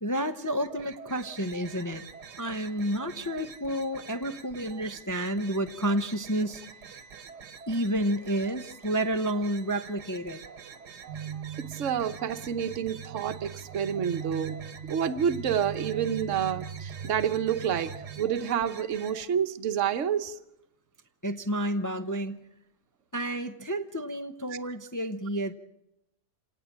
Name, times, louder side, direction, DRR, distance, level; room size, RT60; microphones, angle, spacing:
voice 1, 0.0-2.0 2.4-6.6 6.9-7.0 7.7-10.4 21.2-22.4 23.1-25.5, right 1 dB, 15° left, 8 dB, 0.6 m, -30 dB
sound 1, 0.5-19.3, right 6 dB, 90° right, 1.9 m, -47 dB
sound 2, 11.1-18.2, right 8 dB, 30° right, 1.5 m, -40 dB
voice 2, 11.6-14.6 14.9-17.9 18.2-20.3, right 8 dB, 55° right, 10 dB, 1.3 m, -28 dB
27.0 x 18.5 x 7.4 m, 0.86 s
omnidirectional pair, 1.7 m